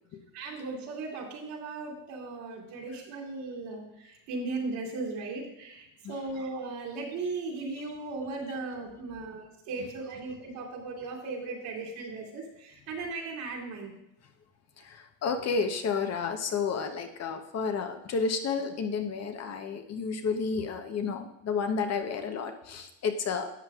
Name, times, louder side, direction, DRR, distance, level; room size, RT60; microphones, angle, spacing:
voice 1, 0.3-13.9, right 3 dB, 65° right, -2 dB, 2.6 m, -37 dB
voice 2, 14.8-23.5, left 5 dB, 40° left, 5 dB, 1.0 m, -31 dB
12.0 x 7.5 x 2.4 m, 0.84 s
supercardioid pair, 90°, 38 cm